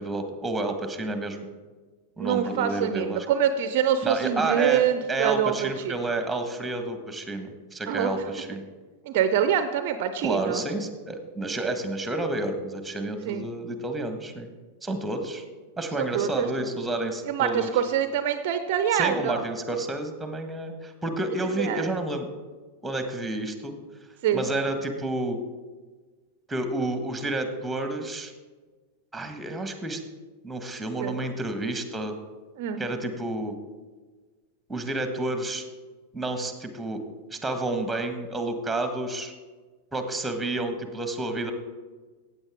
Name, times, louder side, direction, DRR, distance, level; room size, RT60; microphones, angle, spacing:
voice 1, 0.0-1.4 2.2-3.3 4.0-4.8 5.1-8.6 10.2-14.5 14.8-15.4 15.8-17.7 18.9-22.3 22.8-23.7 24.3-25.4 26.5-28.3 29.1-30.0 30.4-32.1 32.8-33.5 34.7-35.6 36.1-37.0 37.3-39.3 39.9-41.5, right 2 dB, 5° right, 7 dB, 1.4 m, -30 dB
voice 2, 2.2-5.9 7.9-8.1 9.1-10.6 13.2-13.4 16.0-16.7 17.3-19.4 21.6-21.8 24.2-24.5 31.0-31.1 32.6-32.8, right 9 dB, 50° right, 10 dB, 0.6 m, -25 dB
15.0 x 8.6 x 3.6 m, 1.4 s
figure-of-eight pair, 90°, 0 cm